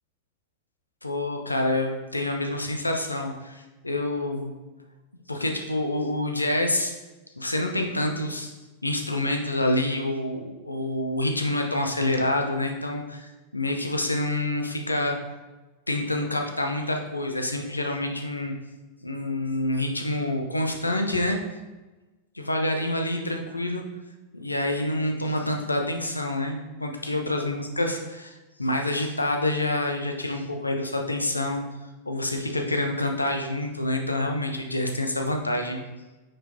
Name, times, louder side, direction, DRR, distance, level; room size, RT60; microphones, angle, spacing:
voice 1, 1.0-4.5 5.3-7.0 7.4-8.5 8.8-15.2 15.9-18.5 19.0-21.4 22.3-23.8 24.3-31.6 32.0-35.8, left 1 dB, 85° left, 3 dB, 0.8 m, -27 dB
8.7 x 5.2 x 2.7 m, 1.2 s
figure-of-eight pair, 90°, 0 cm